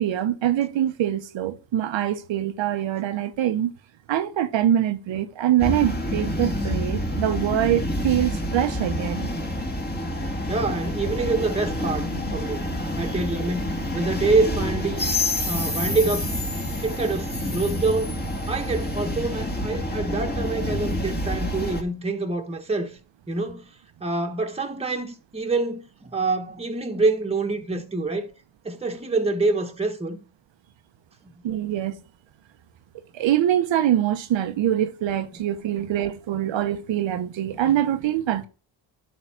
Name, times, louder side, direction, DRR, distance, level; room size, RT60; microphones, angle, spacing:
voice 1, 0.0-3.7 4.1-9.3 31.4-31.9 33.1-38.5, right 11 dB, 90° right, 0.9 m, -24 dB
sound 1, 5.6-21.8, left 1 dB, 20° left, 1.9 m, -28 dB
voice 2, 10.5-12.6 13.0-15.0 15.5-16.3 16.8-18.1 18.5-22.9 23.3-23.6 24.0-28.3 28.6-30.2 31.9-32.0 35.8-35.9, right 3 dB, 15° right, 1.3 m, -26 dB
11.0 x 3.8 x 5.9 m
cardioid pair, 105°, 44 cm